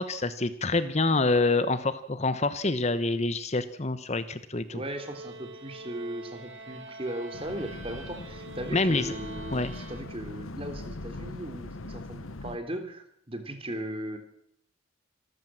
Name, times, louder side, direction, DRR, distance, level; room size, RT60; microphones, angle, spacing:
voice 1, 0.0-4.8 8.7-9.1 9.5-9.7, left 3 dB, 30° left, 13 dB, 1.0 m, -26 dB
voice 2, 4.7-14.2, right 1 dB, 25° right, 8 dB, 3.1 m, -37 dB
sound 1, 4.8-10.5, right 2 dB, 70° right, 2.8 m, -45 dB
sound 2, 7.3-12.6, left 2 dB, 80° left, 1.1 m, -41 dB
26.5 x 13.5 x 7.5 m, 0.74 s
head